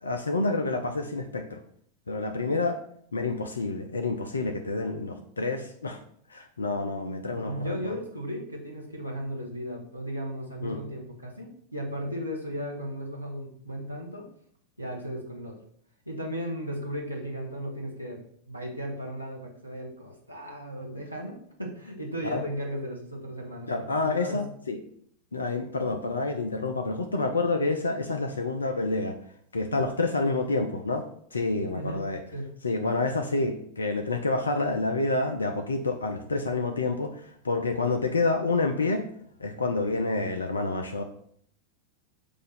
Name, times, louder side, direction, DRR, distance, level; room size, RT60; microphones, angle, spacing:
voice 1, 0.0-1.6 2.1-2.8 3.1-6.0 6.3-7.9 10.6-10.8 22.2-22.4 23.7-24.8 25.3-29.2 29.5-32.2 32.6-39.0 39.4-41.0, left 3 dB, 75° left, 6 dB, 0.5 m, -28 dB
voice 2, 7.2-14.3 14.8-15.6 16.1-18.2 18.5-24.4 31.7-32.0 32.3-32.5, equal, 90° right, -1 dB, 1.0 m, -36 dB
6.6 x 2.6 x 5.5 m, 0.64 s
figure-of-eight pair, 90°, 0 cm